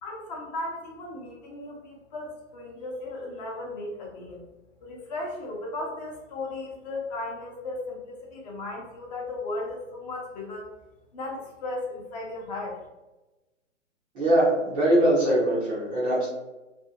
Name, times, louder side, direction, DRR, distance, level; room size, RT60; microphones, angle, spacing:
voice 1, 0.0-4.4 4.8-10.7 11.1-12.8, left 2 dB, 35° left, -1 dB, 0.7 m, -36 dB
voice 2, 14.1-16.3, right 1 dB, 15° right, -8 dB, 0.5 m, -22 dB
2.6 x 2.6 x 2.7 m, 1.1 s
hypercardioid pair, 130°, 37 cm